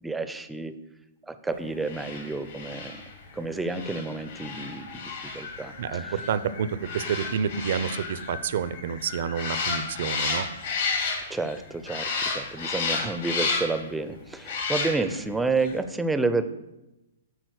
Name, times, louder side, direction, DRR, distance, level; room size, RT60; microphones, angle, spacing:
voice 1, 0.0-0.7 1.3-3.0 3.3-6.1 11.3-16.4, right 3 dB, 5° right, 11 dB, 0.5 m, -30 dB
sound 1, 1.8-11.6 11.9-13.9 14.4-15.3 15.6-15.7, left 4 dB, 65° left, 2.6 m, -32 dB
voice 2, 5.8-10.5, right 7 dB, 60° right, 15 dB, 0.5 m, -29 dB
8.1 x 4.3 x 6.4 m, 0.98 s
hypercardioid pair, 135°, 0 cm